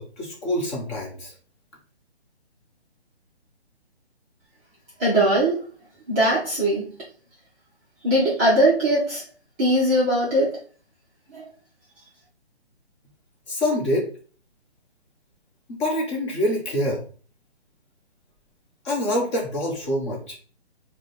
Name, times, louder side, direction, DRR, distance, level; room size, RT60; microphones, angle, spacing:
voice 1, 0.0-1.3 13.5-14.1 15.7-17.0 18.8-20.4, left 1 dB, 25° left, -2 dB, 1.3 m, -26 dB
voice 2, 5.0-5.6 6.1-6.9 8.0-9.2 9.6-10.6 11.3-11.4, right 1 dB, 10° right, -9 dB, 0.7 m, -20 dB
4.9 x 2.3 x 4.3 m, 0.40 s
figure-of-eight pair, 150°, 33 cm